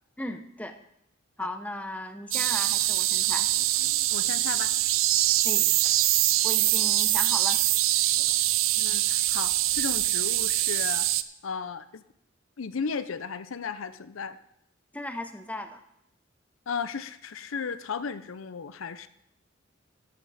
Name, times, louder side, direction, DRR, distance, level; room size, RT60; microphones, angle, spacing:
voice 1, 0.2-0.8 1.4-3.5 5.4-5.7 6.4-7.6 14.9-15.8, left 1 dB, 5° left, 8 dB, 0.7 m, -36 dB
sound 1, 2.3-11.2, right 15 dB, 85° right, 0.5 m, -24 dB
voice 2, 4.1-4.7 8.7-11.1 11.4-12.0 12.6-14.4 16.7-19.1, left 5 dB, 85° left, 13 dB, 0.6 m, -35 dB
12.5 x 11.5 x 4.1 m, 0.76 s
head